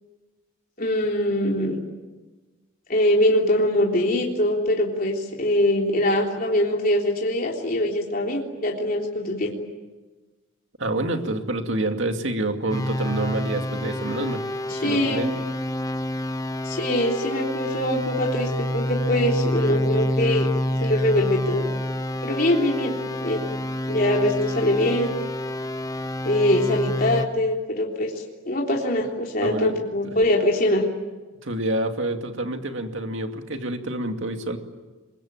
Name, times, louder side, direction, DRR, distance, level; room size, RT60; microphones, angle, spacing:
voice 1, 0.8-1.8 2.9-9.5 14.7-15.3 16.6-20.5 20.8-21.7 22.2-22.9 23.2-23.4 23.9-25.1 26.2-30.8, left 1 dB, 40° left, -1 dB, 3.5 m, -23 dB
voice 2, 10.8-14.4 14.8-15.4 29.4-29.8 30.0-30.1 31.4-34.6, right 1 dB, 60° right, 5 dB, 2.4 m, -27 dB
sound 1, 12.7-27.3, left 1 dB, 15° left, 0.9 m, -28 dB
27.0 x 23.5 x 8.8 m, 1.2 s
head